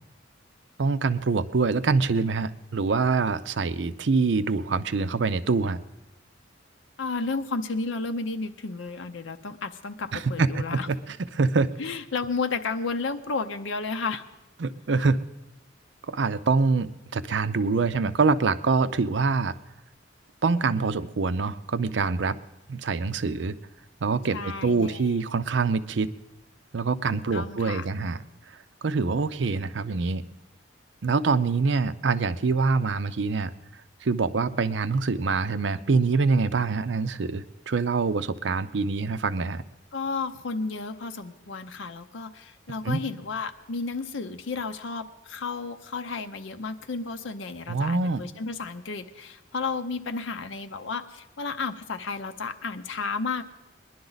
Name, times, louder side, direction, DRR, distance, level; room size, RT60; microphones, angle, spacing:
voice 1, 0.8-5.8 10.1-11.7 14.6-15.2 16.1-19.6 20.4-22.4 22.7-23.6 24.0-26.1 26.7-28.2 28.8-30.2 31.0-33.5 34.0-39.6 42.8-43.0 47.7-48.2, right 4 dB, 65° right, 13 dB, 0.5 m, -25 dB
voice 2, 7.0-10.9 11.8-14.2 24.3-25.1 27.3-27.9 39.9-53.4, left 4 dB, 80° left, 7 dB, 0.7 m, -32 dB
21.0 x 11.0 x 4.0 m, 0.93 s
head